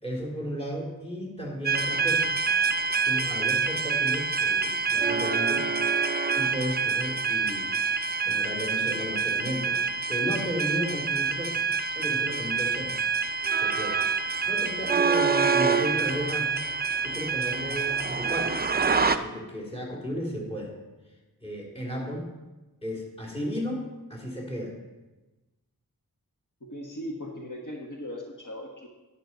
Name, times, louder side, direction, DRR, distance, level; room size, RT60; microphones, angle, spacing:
voice 1, 0.0-2.3 3.1-5.7 6.3-7.8 8.2-9.8 10.1-11.6 11.9-13.0 13.6-14.0 14.5-16.5 17.0-18.6 19.1-20.7 21.4-22.3 22.8-24.8, equal, 15° left, -1 dB, 2.7 m, -34 dB
sound 1, 1.6-19.2, right 5 dB, 25° right, 0.5 m, -26 dB
voice 2, 26.6-28.9, equal, 55° left, -1 dB, 1.4 m, -38 dB
11.5 x 9.1 x 4.1 m, 1.1 s
wide cardioid pair, 75°, 38 cm